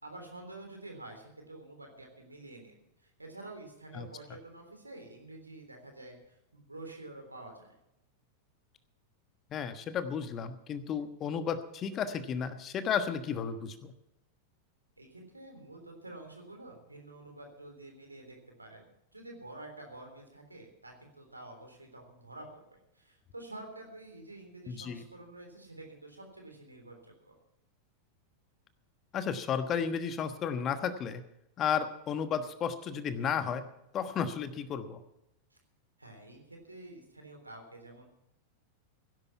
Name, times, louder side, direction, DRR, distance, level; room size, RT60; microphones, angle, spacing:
voice 1, 0.0-7.7 15.0-18.9 19.1-22.6 22.9-27.3 35.5-35.6 36.0-38.1, right 2 dB, 85° right, 3 dB, 3.6 m, -49 dB
voice 2, 9.5-13.9 24.7-25.0 29.1-31.2 31.6-33.6 33.9-35.0, left 7 dB, 30° left, 11 dB, 1.2 m, -33 dB
16.5 x 11.0 x 5.8 m, 0.85 s
figure-of-eight pair, 90°, 0 cm